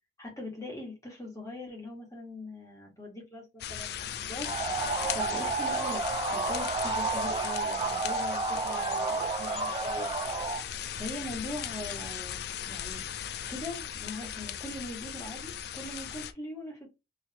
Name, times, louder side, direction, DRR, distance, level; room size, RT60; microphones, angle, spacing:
voice 1, 0.2-4.5 5.1-6.0 6.3-10.1 10.5-13.0 13.5-16.9, left 1 dB, 15° left, -1 dB, 1.5 m, -41 dB
sound 1, 3.6-16.3, left 9 dB, 55° left, 0.3 m, -38 dB
sound 2, 4.4-10.6, right 3 dB, 25° right, 0.4 m, -31 dB
3.9 x 2.8 x 2.9 m, 0.24 s
head